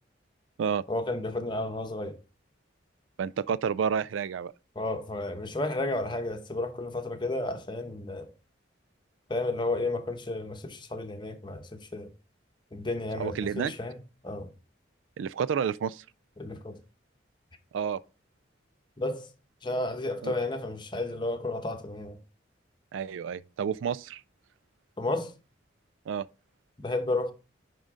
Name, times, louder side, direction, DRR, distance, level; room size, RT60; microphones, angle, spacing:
voice 1, 0.9-2.2 4.7-8.3 9.3-12.1 12.7-14.0 14.2-14.5 16.4-16.8 19.0-19.3 19.6-22.2 25.0-25.3 26.8-27.3, left 2 dB, 25° left, 0.9 m, -32 dB
voice 2, 3.2-4.5 13.2-13.7 15.2-16.0 17.7-18.0 20.2-20.3 22.9-24.2 26.1-26.2, right 7 dB, 85° right, 0.3 m, -30 dB
10.5 x 3.8 x 3.7 m
head